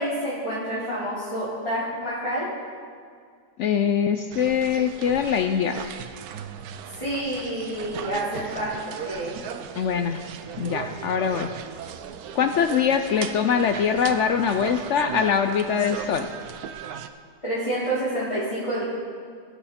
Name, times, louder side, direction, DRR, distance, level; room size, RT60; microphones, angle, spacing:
voice 1, 0.0-2.5 7.0-8.7 9.0-9.3 17.4-18.8, right 1 dB, 20° left, -11 dB, 2.7 m, -28 dB
voice 2, 3.6-5.8 9.8-10.2 10.6-11.5 12.4-16.3, left 7 dB, 80° left, 8 dB, 0.6 m, -23 dB
sound 1, 4.3-17.1, right 8 dB, 70° right, 1.1 m, -37 dB
19.0 x 6.5 x 4.2 m, 2.1 s
omnidirectional pair, 1.8 m